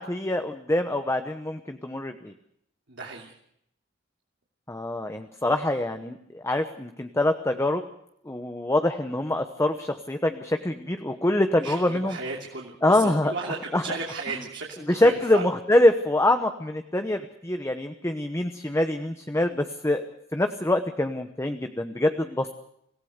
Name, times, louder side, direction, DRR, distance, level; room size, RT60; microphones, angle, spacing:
voice 1, 0.0-2.3 4.7-7.8 8.2-12.2 12.8-13.3 13.7-13.8 14.9-20.0 20.3-22.5, left 1 dB, 15° left, 7 dB, 1.0 m, -25 dB
voice 2, 2.9-3.4 11.6-15.4, right 3 dB, 65° right, -1 dB, 3.0 m, -35 dB
26.0 x 16.5 x 6.6 m, 0.74 s
head